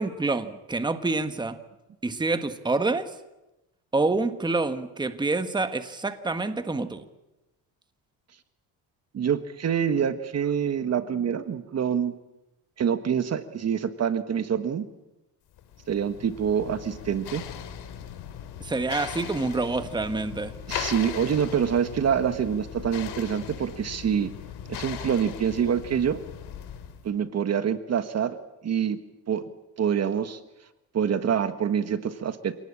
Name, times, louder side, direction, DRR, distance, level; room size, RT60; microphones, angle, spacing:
voice 1, 0.0-1.6 2.0-3.1 3.9-7.0 18.6-20.5, right 3 dB, 10° right, 9 dB, 1.4 m, -27 dB
voice 2, 9.1-12.1 12.8-14.9 15.9-17.4 20.7-24.3 24.7-26.2 27.0-28.4 28.6-29.0 29.3-29.5 29.8-30.4 30.9-32.5, right 8 dB, 40° right, 11 dB, 1.5 m, -26 dB
sound 1, 15.6-27.1, left 9 dB, 80° left, 3.0 m, -39 dB
27.0 x 19.0 x 8.8 m, 0.97 s
cardioid pair, 125°, 38 cm